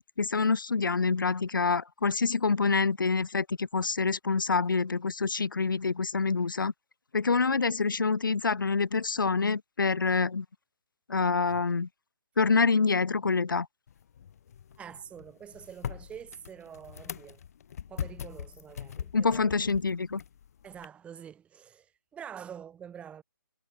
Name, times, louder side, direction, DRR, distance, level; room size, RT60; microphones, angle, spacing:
voice 1, 0.0-6.7 7.1-10.5 11.1-11.9 12.4-13.7 19.1-20.2, left 4 dB, 80° left, 0.6 m, -26 dB
sound 1, 13.9-20.9, left 8 dB, 50° left, 1.5 m, -42 dB
voice 2, 14.8-17.4 17.9-19.5 20.6-23.2, right 8 dB, 10° right, 6.1 m, -46 dB
figure-of-eight pair, 145°, 11 cm